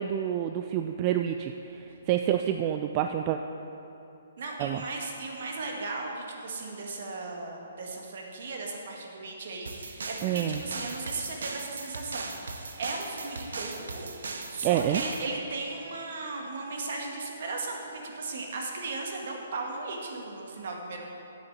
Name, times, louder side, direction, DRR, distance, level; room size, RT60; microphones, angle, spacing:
voice 1, 0.0-3.4 4.6-4.8 10.2-10.6 14.6-15.0, right 11 dB, 30° right, 6 dB, 0.3 m, -28 dB
voice 2, 4.4-14.1 14.5-21.0, right 3 dB, 60° right, 1 dB, 1.7 m, -36 dB
sound 1, 9.7-15.3, right 3 dB, 80° right, 0.9 m, -38 dB
8.1 x 6.7 x 7.1 m, 2.8 s
hypercardioid pair, 155°, 0 cm